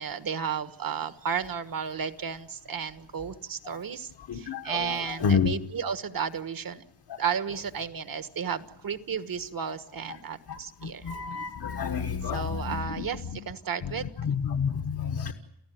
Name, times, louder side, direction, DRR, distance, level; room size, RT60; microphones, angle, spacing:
voice 1, 0.0-6.8 7.2-11.1 12.3-14.3, right 7 dB, 55° right, 11 dB, 1.4 m, -33 dB
voice 2, 4.3-5.5 7.1-7.2 10.5-13.0 14.2-15.3, left 6 dB, 60° left, 5 dB, 1.4 m, -29 dB
30.0 x 15.0 x 9.3 m, 0.81 s
wide cardioid pair, 155°, 41 cm